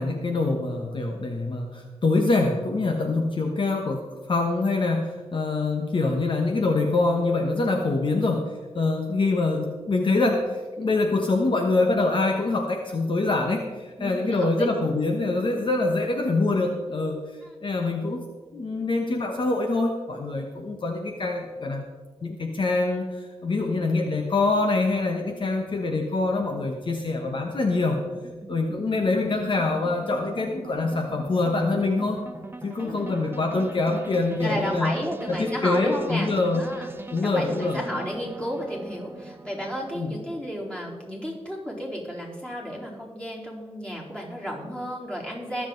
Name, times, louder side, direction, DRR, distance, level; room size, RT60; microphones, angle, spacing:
voice 1, 0.0-17.2 17.6-18.2 18.5-21.8 22.2-28.0 28.5-32.2 32.6-34.9 35.3-36.6 37.1-37.8 39.9-40.2, left 3 dB, 50° left, 3 dB, 1.2 m, -25 dB
voice 2, 14.0-14.7 17.4-17.5 32.8-33.3 34.4-36.9 37.2-45.7, equal, 10° left, -4 dB, 4.1 m, -33 dB
sound 1, 26.4-40.4, right 2 dB, 20° right, 1.1 m, -41 dB
21.0 x 7.3 x 4.0 m, 1.4 s
cardioid pair, 70°, 11 cm